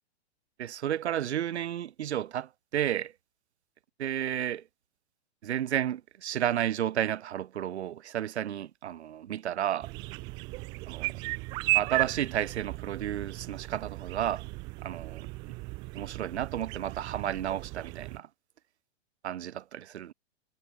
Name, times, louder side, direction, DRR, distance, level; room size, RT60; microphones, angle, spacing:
voice 1, 0.6-3.1 4.0-4.6 5.4-9.9 10.9-11.1 11.7-14.4 14.8-15.3 15.9-18.3 19.2-20.1, right 11 dB, 70° right, 3.1 m, -32 dB
sound 1, 9.8-18.2, right 25 dB, 15° right, 0.3 m, -35 dB
hypercardioid pair, 140°, 34 cm